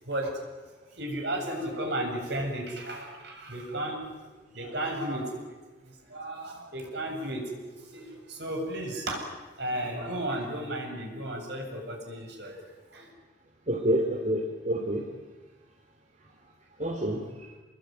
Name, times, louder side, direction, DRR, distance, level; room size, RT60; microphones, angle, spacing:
voice 1, 0.1-0.5 1.0-4.1 4.5-5.6 5.9-9.2 9.6-12.6 12.9-13.1, right 1 dB, 65° right, 2 dB, 7.8 m, -34 dB
voice 2, 13.7-15.0 16.8-17.5, equal, 40° right, 2 dB, 2.9 m, -28 dB
28.0 x 22.0 x 9.4 m, 1.3 s
head